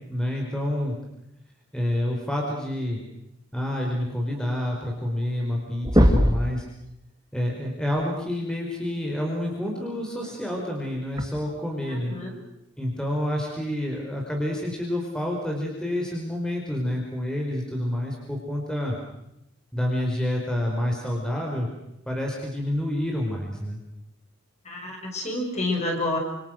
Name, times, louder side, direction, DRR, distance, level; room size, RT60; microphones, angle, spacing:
voice 1, 0.1-1.0 1.7-3.0 3.5-6.7 7.3-12.1 12.8-19.0 19.7-21.7 22.1-23.8, left 1 dB, 5° left, -1 dB, 4.4 m, -28 dB
sound 1, 5.3-5.6 5.8-6.5 8.2-8.3 10.2-10.3 11.2-11.3, equal, 20° right, 2.2 m, -19 dB
voice 2, 11.9-12.4 24.6-26.2, left 2 dB, 35° left, 0 dB, 6.9 m, -29 dB
28.5 x 27.5 x 6.5 m, 0.86 s
head